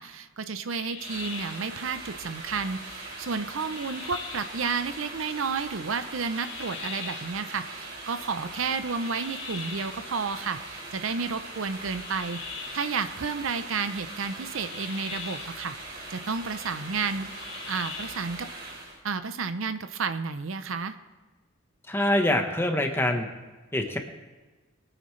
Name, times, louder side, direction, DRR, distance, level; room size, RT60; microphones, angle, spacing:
voice 1, 0.0-12.4 12.7-17.3 17.7-18.5 19.0-20.9, right 5 dB, 75° right, 10 dB, 0.6 m, -31 dB
sound 1, 0.7-1.7 3.6-4.6 6.3-7.4 9.0-10.1 11.9-13.0 14.6-15.6 17.3-18.3, left 6 dB, 60° left, 1.7 m, -41 dB
sound 2, 1.0-19.0, right 2 dB, 50° right, 4.0 m, -41 dB
voice 2, 21.9-23.3 23.7-24.0, left 1 dB, 10° left, 4 dB, 1.1 m, -24 dB
23.5 x 9.0 x 3.2 m, 1.2 s
head